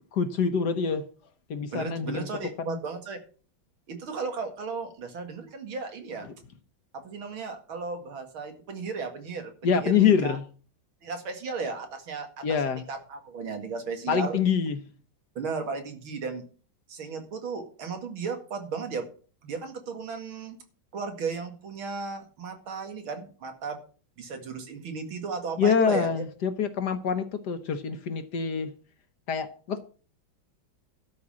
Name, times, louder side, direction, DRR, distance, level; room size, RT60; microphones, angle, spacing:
voice 1, 0.1-1.0 1.5-2.3 2.6-2.8 9.6-10.4 12.4-12.8 14.1-14.8 25.6-28.7 29.3-29.8, left 6 dB, 60° left, 1.4 m, -25 dB
voice 2, 1.7-3.2 3.9-6.3 6.9-10.4 11.0-12.4 12.9-14.4 15.4-16.4 16.9-19.1 19.4-20.6 20.9-23.8 24.2-26.2, right 4 dB, 80° right, 2.8 m, -35 dB
12.5 x 5.4 x 7.4 m
omnidirectional pair, 2.2 m